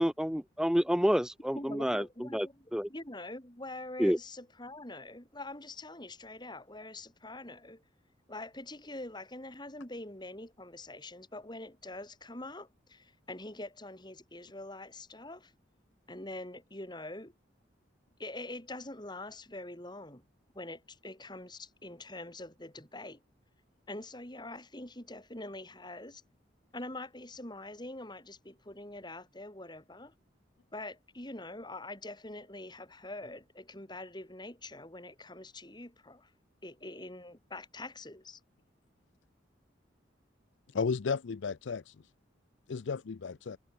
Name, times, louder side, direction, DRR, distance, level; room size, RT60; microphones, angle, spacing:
voice 1, 0.0-2.0 2.3-2.5 2.7-2.9 4.0-4.2, equal, 5° right, 0.7 m, -28 dB
voice 2, 1.5-7.8 8.3-15.5 16.1-17.3 18.2-20.2 20.5-23.2 23.9-26.2 26.7-30.1 30.7-36.3 36.6-38.4, left 2 dB, 25° left, 5.0 m, -44 dB
voice 3, 40.7-41.9 42.7-43.6, left 5 dB, 75° left, 0.5 m, -33 dB
head